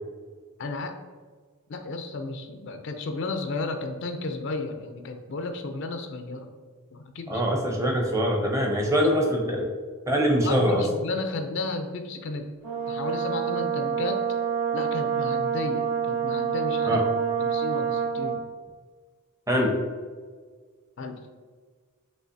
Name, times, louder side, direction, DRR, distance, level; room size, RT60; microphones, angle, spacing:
voice 1, 0.6-0.9 1.7-6.5 6.9-7.4 9.0-9.1 10.4-12.4 12.9-14.2 14.7-17.0 17.4-18.4 21.0-21.2, left 3 dB, 55° left, 6 dB, 0.4 m, -33 dB
voice 2, 7.3-9.7 10.1-10.8 16.9-17.0 19.5-19.7, equal, 15° right, 0 dB, 0.6 m, -23 dB
Brass instrument, 12.6-18.5, right 7 dB, 70° right, 1.2 m, -27 dB
5.4 x 3.1 x 2.6 m, 1.6 s
head